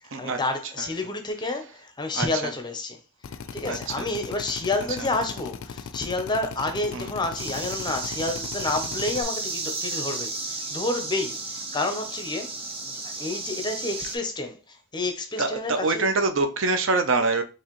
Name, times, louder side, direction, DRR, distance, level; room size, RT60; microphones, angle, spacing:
voice 1, 0.2-3.0 3.3-16.1, left 2 dB, 20° left, 0.6 m, -30 dB
voice 2, 2.1-2.5 3.6-4.1 6.9-7.1 15.4-17.4, right 3 dB, 60° right, 0.6 m, -25 dB
Drill, 3.2-9.2, left 6 dB, 70° left, 0.4 m, -38 dB
sound 1, 7.3-14.2, right 3 dB, 25° right, 0.7 m, -33 dB
4.7 x 3.0 x 3.0 m
head